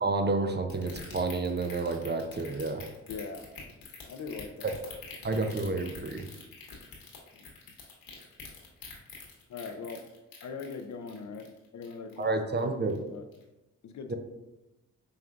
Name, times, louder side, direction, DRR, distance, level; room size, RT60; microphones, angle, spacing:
voice 1, 0.0-2.8 4.6-4.7 5.2-6.3 12.2-13.0 14.1-14.2, right 3 dB, 30° right, 5 dB, 0.6 m, -30 dB
sound 1, 0.7-12.3 12.6-13.0 13.3-13.4, left 5 dB, 70° left, 1.3 m, -46 dB
voice 2, 3.1-3.5 4.1-4.8 7.3-7.5 9.5-10.0 10.4-13.2 13.8-14.1, left 5 dB, 50° left, 7 dB, 0.5 m, -41 dB
5.1 x 3.2 x 2.4 m, 0.97 s
supercardioid pair, 45°, 36 cm